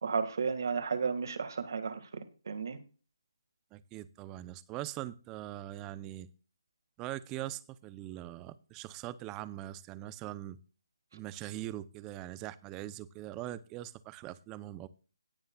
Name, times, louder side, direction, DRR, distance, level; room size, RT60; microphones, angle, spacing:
voice 1, 0.0-2.8, right 5 dB, 60° right, 9 dB, 1.9 m, -33 dB
voice 2, 3.7-6.3 7.0-10.6 11.1-14.9, right 14 dB, 15° right, 17 dB, 0.6 m, -42 dB
17.5 x 8.8 x 2.3 m, 0.36 s
hypercardioid pair, 165°, 2 cm